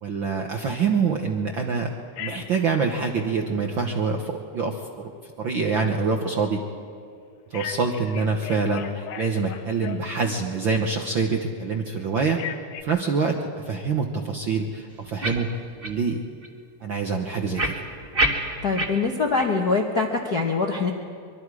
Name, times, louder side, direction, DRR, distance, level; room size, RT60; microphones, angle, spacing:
voice 1, 0.0-1.9 2.2-5.1 5.4-6.6 7.5-12.4 12.8-15.5 15.8-16.2 16.8-17.8, right 4 dB, 60° right, 2 dB, 1.3 m, -25 dB
Telephone, 2.2-2.7 7.5-10.4 12.3-12.8, left 9 dB, 85° left, 2.5 m, -37 dB
sound 1, 15.2-15.4 15.8-16.0 16.4-16.5 17.6-18.9 19.4-19.5 20.0-20.1, right 1 dB, 30° right, 1.1 m, -25 dB
voice 2, 18.6-20.9, left 4 dB, 55° left, 1 dB, 1.0 m, -23 dB
24.0 x 23.0 x 4.9 m, 2.2 s
omnidirectional pair, 3.6 m